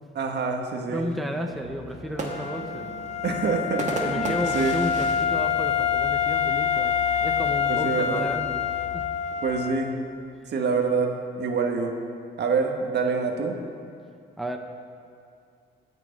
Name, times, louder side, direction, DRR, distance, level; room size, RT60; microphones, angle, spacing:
voice 1, 0.1-1.1 3.2-4.8 7.7-8.3 9.4-9.9 10.5-11.9 12.4-13.5, right 4 dB, 60° right, 3 dB, 1.5 m, -26 dB
voice 2, 0.9-2.9 4.0-8.6 8.9-9.0 14.4-14.6, equal, ahead, 4 dB, 0.8 m, -32 dB
sound 1, 1.5-9.0, left 3 dB, 90° right, 1.9 m, -43 dB
sound 2, 1.9-6.5 6.9-7.0 7.3-7.8 8.6-10.2, right 3 dB, 35° right, 1.8 m, -37 dB
Wind instrument woodwind instrument, 2.2-10.0, left 8 dB, 35° left, 0.7 m, -26 dB
19.0 x 6.5 x 5.3 m, 2.4 s
cardioid pair, 90°, 20 cm